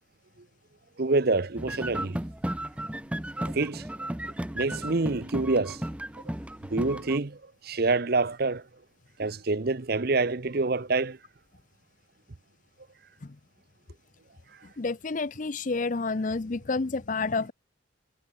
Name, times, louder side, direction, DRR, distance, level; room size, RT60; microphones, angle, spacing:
voice 1, 1.0-2.2 3.4-3.8 4.5-5.9 6.7-7.4 7.6-8.6 9.2-11.2, right 3 dB, 50° right, 0.8 m, -26 dB
sound 1, 1.6-7.2, right 1 dB, 5° right, 0.6 m, -34 dB
voice 2, 14.8-17.5, left 3 dB, 40° left, 0.5 m, -29 dB
head